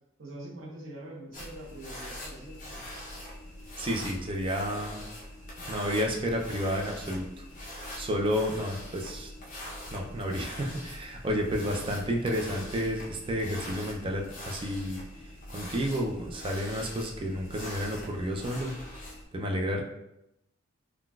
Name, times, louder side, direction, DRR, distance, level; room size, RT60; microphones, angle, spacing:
voice 1, 0.2-2.8 11.6-12.0, right 1 dB, 90° right, -4 dB, 0.9 m, -44 dB
sound 1, 1.3-19.2, left 1 dB, 40° left, 0.7 m, -43 dB
voice 2, 3.8-5.0 5.7-7.5 8.0-9.3 9.9-15.0 15.5-18.7 19.3-19.8, equal, 25° right, 1 dB, 0.4 m, -31 dB
3.8 x 2.3 x 2.3 m, 0.84 s
head